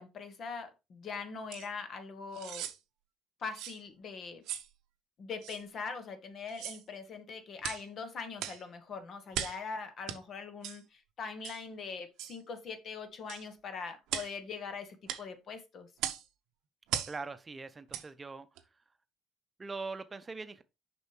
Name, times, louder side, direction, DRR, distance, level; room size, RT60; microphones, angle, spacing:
voice 1, 0.0-2.7 3.4-4.4 5.2-15.9, left 5 dB, 50° left, 1.2 m, -42 dB
sound 1, 1.5-1.7 2.3-2.8 3.5-3.8 4.4-4.7 5.4-5.6 6.5-6.8 7.6-7.9 8.4-8.6 9.3-9.6 10.1-10.2 10.6-10.8 11.4-11.6 12.2-12.4 13.3-13.5 14.1-14.3 15.1-15.2 16.0-16.3 16.9-17.2 17.9-18.1 18.6-18.7, right 11 dB, 70° right, 0.7 m, -38 dB
voice 2, 17.1-18.5 19.6-20.6, right 4 dB, 30° right, 0.7 m, -41 dB
6.4 x 5.3 x 3.2 m
hypercardioid pair, 50°, 0 cm